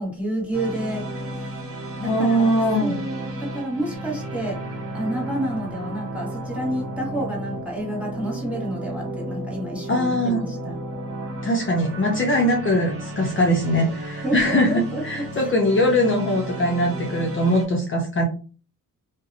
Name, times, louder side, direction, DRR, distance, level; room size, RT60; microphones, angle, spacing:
voice 1, 0.0-1.6 2.0-2.5 2.8-4.6 4.9-10.8 14.2-15.5, right 1 dB, 5° right, -4 dB, 1.1 m, -29 dB
sound 1, 0.5-17.7, right 1 dB, 45° right, 0.9 m, -33 dB
voice 2, 2.0-2.9 9.9-10.4 11.4-18.3, equal, 40° left, 0 dB, 0.6 m, -21 dB
2.6 x 2.0 x 2.6 m, 0.37 s
cardioid pair, 90°, 33 cm